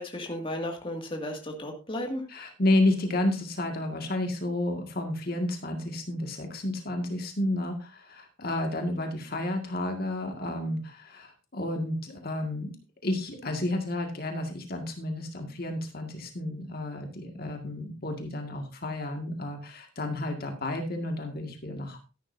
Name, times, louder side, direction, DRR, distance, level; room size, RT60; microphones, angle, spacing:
voice 1, 0.0-2.2, left 1 dB, 30° left, 2 dB, 2.1 m, -34 dB
voice 2, 2.3-12.7 13.0-22.0, left 1 dB, 55° left, 4 dB, 2.0 m, -31 dB
13.0 x 11.0 x 2.7 m, 0.29 s
head